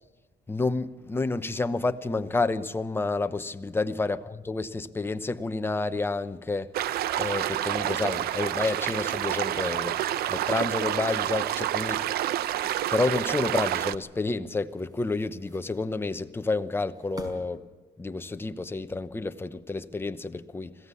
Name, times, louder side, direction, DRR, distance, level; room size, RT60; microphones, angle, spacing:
voice 1, 0.5-6.7 7.2-12.0 12.9-17.6 18.0-20.8, left 3 dB, 15° left, 10 dB, 0.9 m, -29 dB
sound 1, 6.7-14.0, right 12 dB, 70° right, 0.7 m, -28 dB
sound 2, 12.1-13.9 14.6-16.2 16.8-17.6, right 1 dB, 25° right, 5.0 m, -51 dB
21.0 x 15.5 x 8.4 m, 1.3 s
cardioid pair, 110°, 17 cm